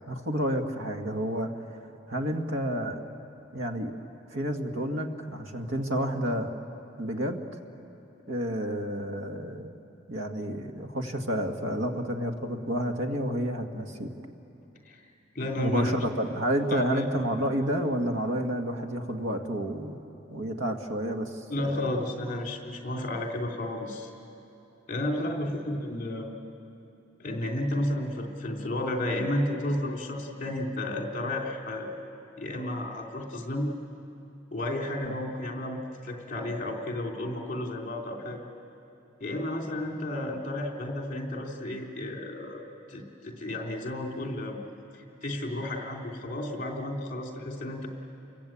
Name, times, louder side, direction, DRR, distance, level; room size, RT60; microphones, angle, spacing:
voice 1, 0.1-1.5 2.1-3.0 3.5-3.9 4.3-6.5 7.0-7.4 8.3-9.8 10.1-14.1 15.6-22.0 35.0-35.1, equal, 80° right, 4 dB, 2.0 m, -30 dB
voice 2, 15.3-16.1 16.7-17.0 21.5-24.1 24.9-26.3 27.2-31.9 32.4-33.7 34.5-38.4 39.2-42.6 42.9-44.6 44.9-47.9, left 1 dB, 40° left, 1 dB, 3.1 m, -32 dB
29.5 x 22.5 x 8.7 m, 2.8 s
head